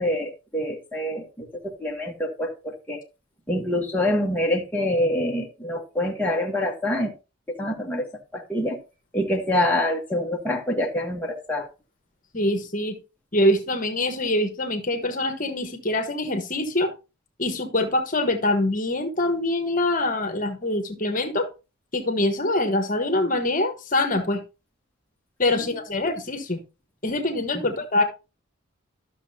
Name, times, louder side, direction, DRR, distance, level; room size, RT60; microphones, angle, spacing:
voice 1, 0.0-3.0 3.5-7.1 7.5-8.1 8.3-8.8 9.1-11.7 25.5-25.6 27.5-27.7, left 1 dB, 10° left, -1 dB, 1.2 m, -26 dB
voice 2, 12.3-13.0 13.3-16.9 17.4-21.5 21.9-24.4 25.4-26.6 27.0-28.0, left 1 dB, 40° left, 6 dB, 1.3 m, -24 dB
12.5 x 6.6 x 2.8 m, 0.29 s
head